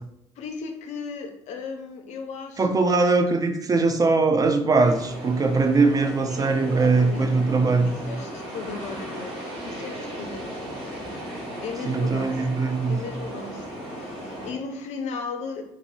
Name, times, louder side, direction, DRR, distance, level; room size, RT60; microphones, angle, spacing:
voice 1, 0.4-3.1 6.3-7.4 7.8-9.3 9.6-10.7 11.6-12.5 12.9-15.6, left 4 dB, 50° left, 5 dB, 0.4 m, -36 dB
voice 2, 2.6-7.9 11.8-13.0, right 3 dB, 25° right, 6 dB, 0.3 m, -21 dB
sound 1, 4.8-14.5, right 1 dB, 70° right, 1.1 m, -36 dB
3.0 x 2.6 x 2.5 m, 0.82 s
figure-of-eight pair, 45°, 15 cm